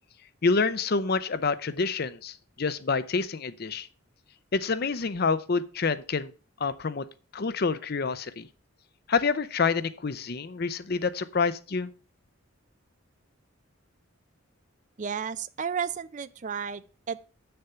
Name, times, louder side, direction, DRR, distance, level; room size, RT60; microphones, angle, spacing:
voice 1, 0.4-3.9 4.5-6.3 6.6-7.1 7.3-8.5 9.1-11.9, left 4 dB, 50° left, 0.6 m, -27 dB
voice 2, 15.0-17.2, right 7 dB, 35° right, 0.4 m, -33 dB
8.0 x 6.8 x 5.6 m
head